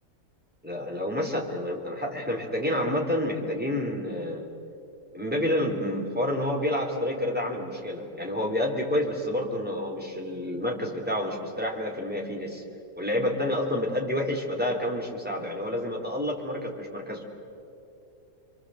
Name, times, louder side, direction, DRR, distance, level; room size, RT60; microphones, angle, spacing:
voice 1, 0.6-4.5 5.1-12.6 13.0-17.2, left 1 dB, 5° right, -1 dB, 3.3 m, -29 dB
28.5 x 24.0 x 7.8 m, 2.8 s
omnidirectional pair, 1.9 m